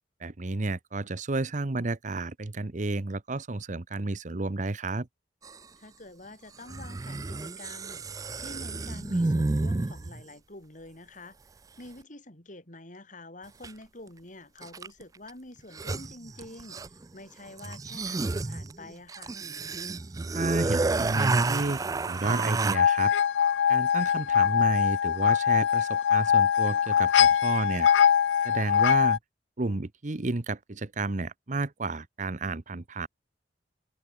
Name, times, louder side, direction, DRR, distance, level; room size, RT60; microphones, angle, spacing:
voice 1, 0.2-5.1 20.3-23.1 23.7-27.9 28.4-29.2 29.6-33.1, right 2 dB, 45° right, 0.9 m, -31 dB
sound 1, 5.4-5.6 6.7-10.2 13.6-13.7 14.6-15.0 15.3-15.4 15.6-17.1 17.6-22.8, right 3 dB, 20° right, 0.4 m, -30 dB
voice 2, 5.8-11.4 11.8-19.4 28.8-28.9, left 2 dB, 45° left, 5.0 m, -47 dB
sound 2, 22.7-29.2, left 8 dB, 85° left, 0.3 m, -22 dB
head